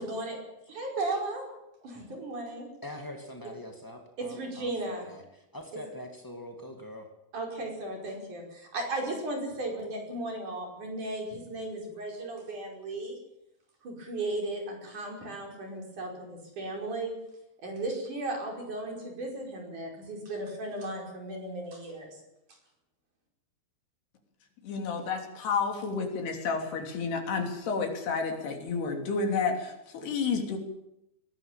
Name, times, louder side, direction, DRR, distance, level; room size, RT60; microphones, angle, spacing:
voice 1, 0.1-1.4 1.8-2.7 4.2-5.1 7.3-13.2 13.8-17.2 17.6-22.2, right 2 dB, 45° right, 1 dB, 6.5 m, -35 dB
voice 2, 2.8-7.1, left 1 dB, 20° left, 3 dB, 0.5 m, -43 dB
voice 3, 24.6-30.6, left 5 dB, 70° left, 3 dB, 5.2 m, -30 dB
21.5 x 18.5 x 8.9 m, 0.85 s
omnidirectional pair, 4.9 m